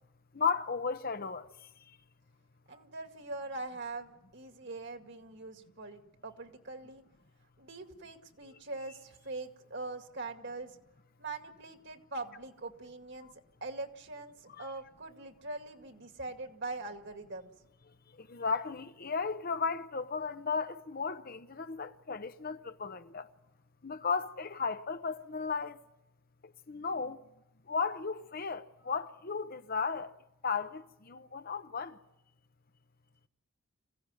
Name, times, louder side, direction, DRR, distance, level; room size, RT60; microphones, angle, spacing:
voice 1, 0.3-1.5 8.5-8.6 14.6-14.7 18.2-23.3 23.8-25.8 26.7-27.2 27.7-30.1 30.4-32.0, left 5 dB, 45° left, 0.8 m, -35 dB
voice 2, 2.7-7.0 7.6-10.8 11.2-13.3 13.6-17.5, right 3 dB, 55° right, 2.2 m, -42 dB
26.5 x 16.5 x 9.7 m
head